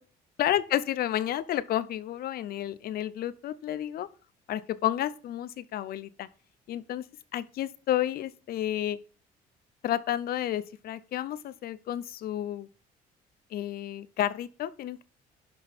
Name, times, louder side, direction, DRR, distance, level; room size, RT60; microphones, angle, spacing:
voice 1, 0.4-4.1 4.5-6.3 6.7-7.1 7.3-9.0 9.8-12.7 13.5-15.0, left 12 dB, 65° left, 0.8 m, -31 dB
11.5 x 3.9 x 6.8 m
cardioid pair, 110°, 17 cm